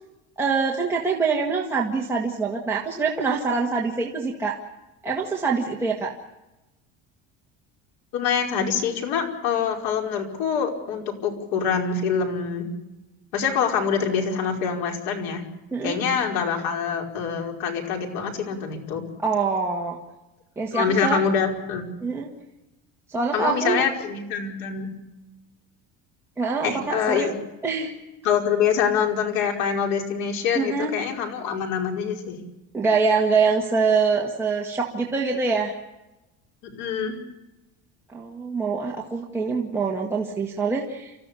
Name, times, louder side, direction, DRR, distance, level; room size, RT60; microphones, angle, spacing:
voice 1, 0.4-4.6 5.0-6.1 15.7-16.0 19.2-20.0 20.6-21.2 22.0-22.3 23.1-23.9 26.4-27.3 27.6-27.9 30.5-30.9 32.7-35.8 38.1-41.1, right 4 dB, 5° right, -3 dB, 1.9 m, -24 dB
voice 2, 8.1-12.7 13.3-15.4 15.8-19.0 20.7-21.9 23.3-24.9 26.6-27.4 28.2-32.4 36.6-37.2, left 7 dB, 85° left, 3 dB, 5.2 m, -25 dB
29.5 x 14.5 x 8.5 m, 1.0 s
cardioid pair, 180°, 34 cm